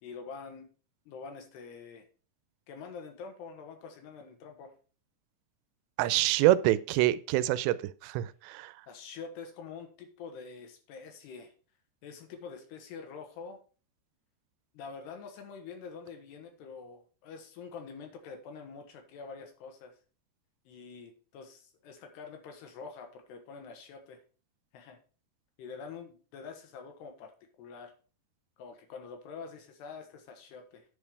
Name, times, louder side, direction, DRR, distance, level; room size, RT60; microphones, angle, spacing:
voice 1, 0.0-0.7 1.1-2.1 2.7-4.7 8.9-11.5 12.0-13.6 14.7-19.9 20.7-24.2 24.7-25.0 25.6-27.3 27.6-27.9 28.6-30.8, left 5 dB, 80° left, 4 dB, 3.4 m, -46 dB
voice 2, 6.0-8.7, right 15 dB, 90° right, 16 dB, 2.8 m, -26 dB
9.9 x 5.2 x 4.7 m, 0.37 s
omnidirectional pair, 4.9 m